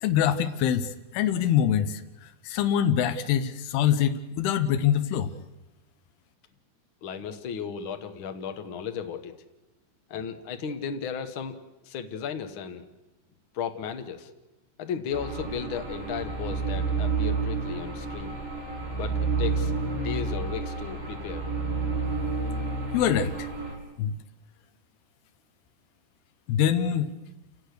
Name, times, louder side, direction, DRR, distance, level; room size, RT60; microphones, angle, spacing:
voice 1, 0.0-5.3 22.9-23.5 24.0-24.1 26.5-27.1, left 9 dB, 85° left, 9 dB, 3.1 m, -24 dB
voice 2, 7.0-9.3 10.1-11.6 11.8-12.8 13.5-14.3 14.8-18.4 18.9-21.4, left 7 dB, 65° left, 7 dB, 1.3 m, -35 dB
sound 1, 15.1-23.7, right 4 dB, 15° right, 4.3 m, -30 dB
29.0 x 17.5 x 6.7 m, 0.99 s
omnidirectional pair, 4.5 m